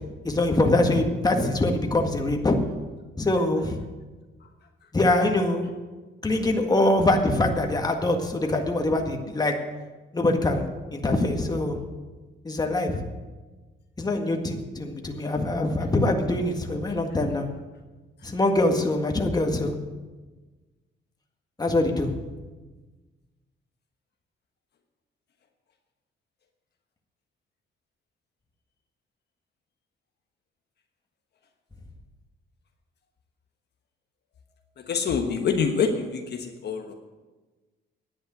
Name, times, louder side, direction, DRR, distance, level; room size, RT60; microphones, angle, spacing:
voice 1, 0.2-2.6 3.2-3.8 4.9-5.7 6.2-9.5 10.1-10.6 10.9-11.8 12.4-13.0 14.0-17.5 18.2-19.8 21.6-22.1, left 2 dB, 20° left, 3 dB, 1.8 m, -23 dB
voice 2, 34.8-36.9, left 6 dB, 55° left, 4 dB, 1.3 m, -26 dB
10.5 x 8.8 x 8.0 m, 1.3 s
cardioid pair, 90°, 20 cm